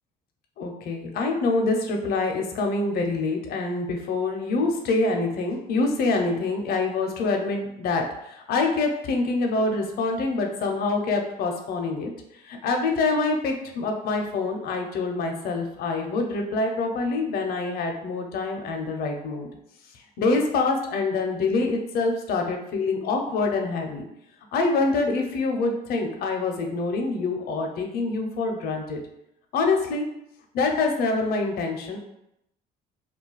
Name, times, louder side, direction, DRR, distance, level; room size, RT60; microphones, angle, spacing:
voice 1, 0.6-12.1 12.5-19.5 20.2-24.1 24.5-29.0 29.5-30.1 30.5-32.0, left 3 dB, 65° left, 2 dB, 0.6 m, -25 dB
2.3 x 2.2 x 3.9 m, 0.80 s
cardioid pair, 110°, 17 cm